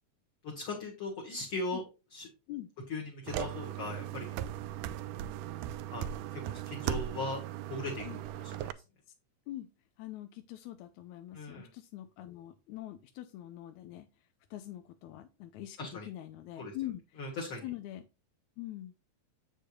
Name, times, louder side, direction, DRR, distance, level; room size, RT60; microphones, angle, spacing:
voice 1, 0.4-1.8 2.1-2.3 2.9-4.3 5.9-7.4 7.7-8.7 11.3-11.7 15.8-16.1 16.6-16.7 17.2-17.7, left 2 dB, 45° left, -2 dB, 2.2 m, -39 dB
sound 1, 3.3-8.7, right 11 dB, 85° right, 2.1 m, -38 dB
voice 2, 10.0-14.1 14.5-17.2 17.6-18.0 18.6-18.9, left 14 dB, 75° left, 7 dB, 1.9 m, -43 dB
7.8 x 6.6 x 2.4 m, 0.29 s
omnidirectional pair, 3.6 m